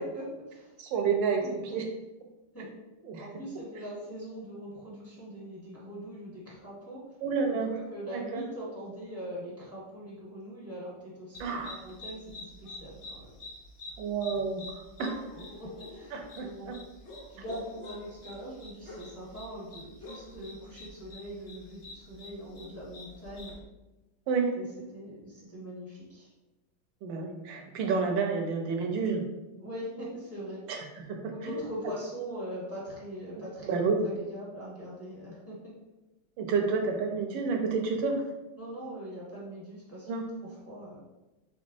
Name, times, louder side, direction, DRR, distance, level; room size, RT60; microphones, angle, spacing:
voice 1, 0.0-0.7 1.4-1.8 2.5-2.7 3.2-7.1 7.6-11.4 11.7-13.3 15.3-16.7 17.3-23.6 24.4-24.7 24.9-26.3 29.6-30.6 31.3-35.7 38.6-40.1 40.4-41.0, equal, 10° left, -7 dB, 0.7 m, -42 dB
voice 2, 0.8-1.8 3.0-3.3 7.2-7.7 8.1-8.4 11.4-11.8 14.0-15.1 16.1-16.7 24.3-24.5 27.0-29.3 30.7-31.6 33.6-34.1 36.4-38.2 40.1-40.2, right 5 dB, 75° right, 2 dB, 1.4 m, -30 dB
sound 1, 11.3-23.6, left 2 dB, 70° left, 0.6 m, -47 dB
5.3 x 3.4 x 2.6 m, 1.0 s
omnidirectional pair, 2.3 m